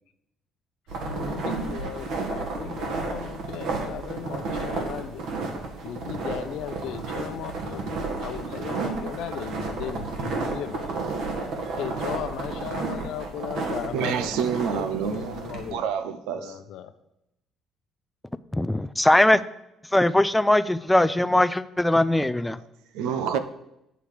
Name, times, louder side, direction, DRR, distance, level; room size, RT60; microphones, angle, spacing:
sound 1, 0.9-15.7, right 3 dB, 75° right, 2.0 m, -32 dB
voice 1, 1.0-5.3 5.8-11.2 11.8-14.5 14.7-16.0 16.3-16.9, left 10 dB, 80° left, 0.7 m, -36 dB
voice 2, 13.9-16.6 22.9-23.4, right 7 dB, 90° right, 0.7 m, -28 dB
voice 3, 18.5-19.4 19.9-22.6, left 1 dB, 5° left, 0.4 m, -20 dB
8.9 x 6.9 x 4.9 m
cardioid pair, 105°, 0 cm